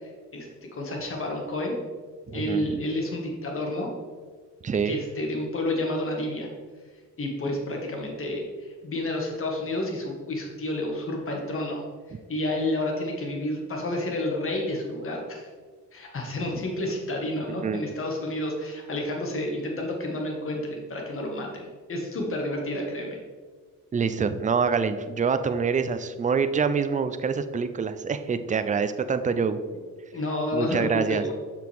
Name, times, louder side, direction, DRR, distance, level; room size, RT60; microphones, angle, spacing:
voice 1, 0.0-0.5 0.7-1.7 2.3-3.9 4.9-6.5 7.2-11.8 12.3-15.5 15.9-23.2 30.1-31.3, left 1 dB, 45° left, 0 dB, 1.9 m, -30 dB
voice 2, 2.3-2.8 4.6-5.0 17.6-17.9 23.9-29.6 30.5-31.2, right 5 dB, 25° right, 10 dB, 0.5 m, -26 dB
7.3 x 6.0 x 3.6 m, 1.5 s
cardioid pair, 90°, 30 cm